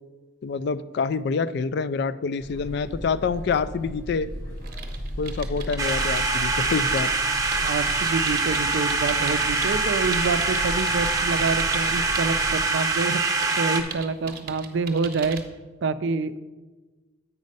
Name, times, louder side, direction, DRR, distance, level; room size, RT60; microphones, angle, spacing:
voice 1, 0.4-4.3 5.2-7.1, left 5 dB, 60° left, 16 dB, 0.3 m, -26 dB
sound 1, 2.4-12.6, equal, 80° left, 2.5 m, -36 dB
sound 2, 4.6-9.8 10.1-12.5 12.9-15.4, right 6 dB, 50° right, 0.8 m, -39 dB
sound 3, 5.8-13.8, right 3 dB, 20° right, 0.7 m, -24 dB
voice 2, 7.6-13.2 13.6-15.4 15.8-16.4, right 4 dB, 70° right, 13 dB, 0.4 m, -27 dB
8.2 x 5.3 x 5.3 m, 1.3 s
head